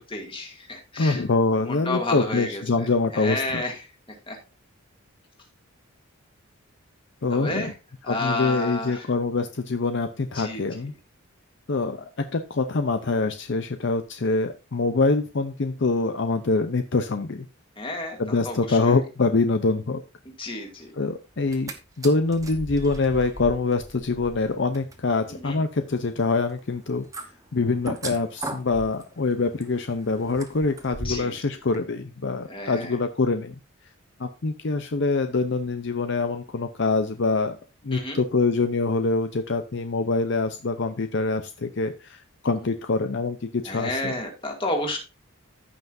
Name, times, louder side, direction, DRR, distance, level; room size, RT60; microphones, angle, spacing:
voice 1, 0.0-1.2 1.6-2.6 3.1-3.8 4.3-4.4 7.3-7.7 8.0-9.0 10.3-10.6 17.8-18.8 20.4-20.9 25.3-25.6 31.0-31.3 32.5-32.9 37.9-38.2 43.7-45.0, left 2 dB, 25° left, 2 dB, 2.2 m, -30 dB
voice 2, 1.0-3.6 7.2-7.7 8.1-10.9 11.7-17.5 18.2-20.0 20.9-21.7 22.0-27.0 27.5-33.5 34.2-37.6 37.8-44.1, left 3 dB, 55° left, 8 dB, 0.6 m, -25 dB
sound 1, 21.3-21.7 22.0-31.4 31.7-31.8, right 2 dB, 15° right, 1.0 m, -39 dB
14.5 x 5.8 x 2.6 m, 0.29 s
head